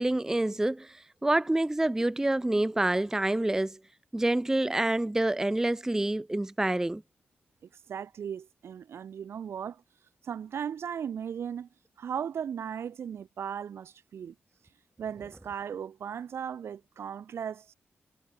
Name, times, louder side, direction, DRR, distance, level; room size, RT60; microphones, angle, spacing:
voice 1, 0.0-3.8 4.1-7.0, right 1 dB, 10° right, 0.4 m, -27 dB
voice 2, 7.9-9.8 10.2-11.7 12.0-14.3 15.0-17.7, right 8 dB, 80° right, 2.6 m, -37 dB
cardioid pair, 75°, 4 cm